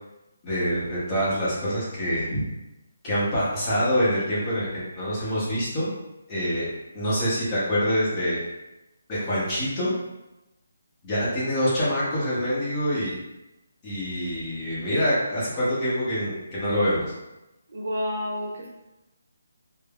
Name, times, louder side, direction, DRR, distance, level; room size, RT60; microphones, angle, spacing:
voice 1, 0.4-2.4 3.0-5.9 6.3-6.7 6.9-8.5 9.1-9.9 11.0-13.2 13.8-17.1, equal, 15° left, -9 dB, 0.7 m, -25 dB
voice 2, 17.7-18.7, left 1 dB, 60° right, -3 dB, 0.8 m, -29 dB
3.3 x 2.0 x 2.3 m, 0.96 s
hypercardioid pair, 170°, 0 cm